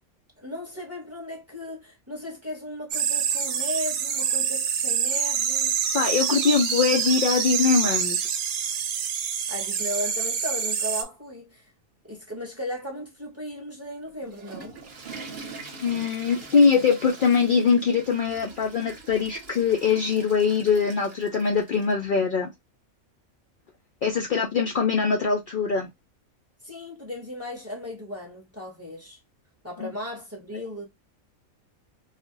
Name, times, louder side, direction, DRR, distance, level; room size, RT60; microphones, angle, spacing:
voice 1, 0.4-5.7 9.5-11.7 12.0-14.8 26.6-29.2 29.6-30.9, left 1 dB, 15° right, 0.7 m, -36 dB
sound 1, 2.9-11.0, right 7 dB, 70° right, 0.9 m, -26 dB
voice 2, 5.9-8.3 15.8-22.5 24.0-25.9 29.8-29.9, left 5 dB, 80° left, 0.4 m, -22 dB
Water / Toilet flush, 14.1-21.9, right 4 dB, 45° right, 0.8 m, -43 dB
2.4 x 2.1 x 3.7 m
omnidirectional pair, 1.5 m